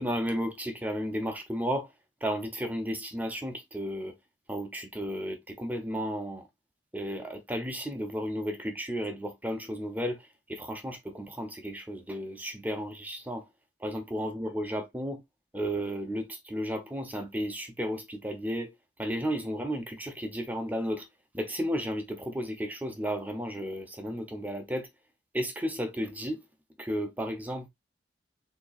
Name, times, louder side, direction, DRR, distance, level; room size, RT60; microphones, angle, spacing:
voice 1, 0.0-1.9 2.2-4.1 4.5-6.5 6.9-13.4 13.8-15.2 15.5-18.7 19.0-21.1 21.3-24.9 25.3-26.4 26.8-27.7, equal, 10° right, 0.7 m, -33 dB
6.5 x 2.8 x 2.4 m
head